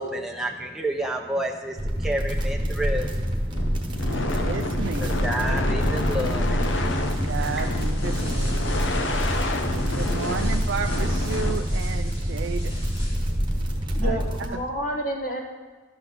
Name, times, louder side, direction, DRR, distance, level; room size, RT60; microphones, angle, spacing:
voice 1, 0.0-4.4 5.0-6.9 7.2-7.6, right 1 dB, ahead, 0 dB, 0.6 m, -31 dB
sound 1, 1.8-14.5, equal, 25° right, 1.1 m, -26 dB
sound 2, 3.5-11.5, left 2 dB, 85° left, 0.8 m, -29 dB
voice 2, 4.0-5.6 7.1-8.8 9.9-12.7 14.0-14.2, right 6 dB, 85° right, 6 dB, 0.4 m, -33 dB
sound 3, 6.6-13.5, left 1 dB, 30° left, 1.6 m, -43 dB
voice 3, 13.9-15.4, right 1 dB, 45° left, 2 dB, 1.4 m, -29 dB
12.0 x 4.1 x 6.9 m, 1.3 s
head